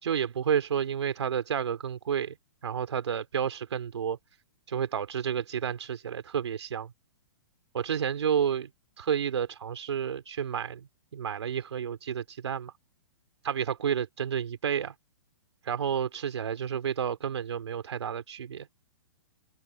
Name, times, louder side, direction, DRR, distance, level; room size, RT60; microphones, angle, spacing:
voice 1, 0.0-2.4 2.6-4.2 4.7-6.9 7.7-8.7 9.0-12.7 13.4-14.9 15.6-18.7, right 8 dB, 85° right, 2.9 m, -30 dB
open air
hypercardioid pair, 145°, 14 cm